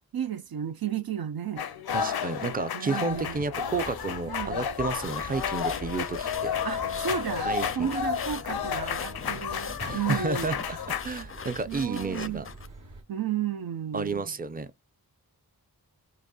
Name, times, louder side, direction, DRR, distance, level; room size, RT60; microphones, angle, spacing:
voice 1, 0.1-1.6 2.7-3.4 4.3-4.7 6.6-10.6 11.7-12.5 13.1-14.2, right 9 dB, 75° right, 0.5 m, -33 dB
sound 1, 1.6-11.0, left 7 dB, 90° left, 0.5 m, -32 dB
voice 2, 1.9-6.5 7.4-7.9 9.8-10.8 11.0-12.5 13.9-14.7, right 4 dB, 25° right, 0.5 m, -31 dB
sound 2, 3.1-13.0, right 1 dB, 55° right, 1.1 m, -45 dB
sound 3, 4.8-12.7, left 6 dB, 35° left, 0.4 m, -41 dB
4.0 x 3.1 x 2.3 m
wide cardioid pair, 65°, 37 cm